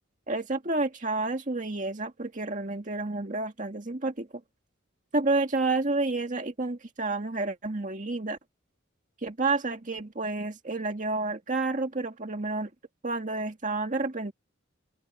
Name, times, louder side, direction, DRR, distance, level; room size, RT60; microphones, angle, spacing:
voice 1, 0.3-4.3 5.1-8.4 9.2-12.7 13.0-14.3, right 3 dB, 40° right, 1.9 m, -30 dB
open air
head